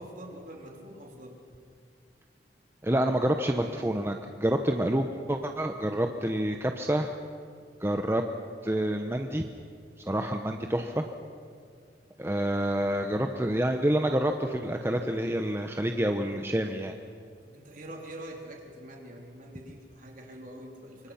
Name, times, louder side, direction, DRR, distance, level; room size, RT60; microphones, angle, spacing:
voice 1, 0.0-1.4 17.4-21.1, right 1 dB, 45° right, 1 dB, 3.8 m, -45 dB
voice 2, 2.8-7.1 7.8-8.2 8.6-9.5 10.1-11.0 12.2-16.9, right 1 dB, 15° right, 5 dB, 0.9 m, -28 dB
25.5 x 24.5 x 5.9 m, 2.3 s
head